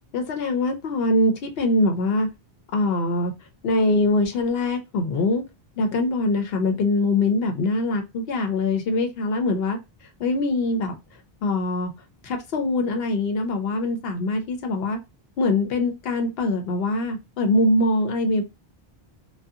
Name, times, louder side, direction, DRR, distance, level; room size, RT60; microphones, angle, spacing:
voice 1, 0.1-2.3 2.7-3.3 3.6-5.4 5.8-9.8 10.2-10.9 11.4-11.9 12.2-15.0 15.4-18.4, left 2 dB, 70° left, 0.8 m, -23 dB
2.6 x 2.2 x 2.3 m
omnidirectional pair, 1.1 m